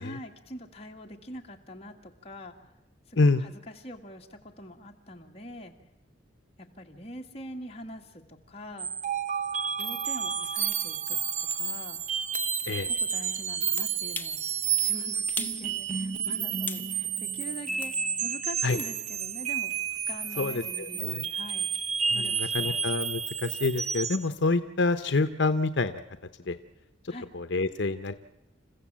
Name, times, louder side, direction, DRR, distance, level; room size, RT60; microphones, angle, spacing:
voice 1, 0.0-2.6 3.1-5.8 6.6-8.9 9.8-11.2 11.5-12.0 12.6-14.5 14.8-17.9 18.2-21.7 22.1-22.8 27.1-27.3, equal, 30° left, 1 dB, 1.9 m, -44 dB
sound 1, 8.8-24.3, right 7 dB, 35° right, 0.7 m, -31 dB
sound 2, 10.7-10.8 11.5-11.6 12.3-12.5 13.8-14.4 14.8-14.9 15.4-15.6 16.0-16.9 17.8-18.0 18.8-18.9, left 4 dB, 10° left, 1.0 m, -39 dB
voice 2, 20.4-21.2 22.1-26.0 26.5-26.6 27.3-28.1, left 3 dB, 70° left, 9 dB, 0.8 m, -27 dB
29.0 x 15.0 x 7.5 m, 0.99 s
head